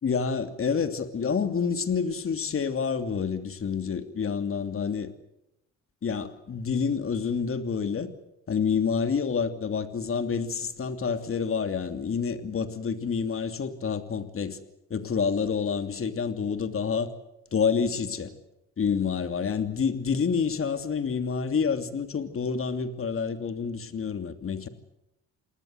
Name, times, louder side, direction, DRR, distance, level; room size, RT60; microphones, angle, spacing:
voice 1, 0.0-5.1 6.0-8.1 8.5-14.6 14.9-17.1 17.5-18.3 18.8-24.7, left 6 dB, 45° left, 8 dB, 2.9 m, -28 dB
28.5 x 19.5 x 8.0 m, 0.85 s
cardioid pair, 90°, 30 cm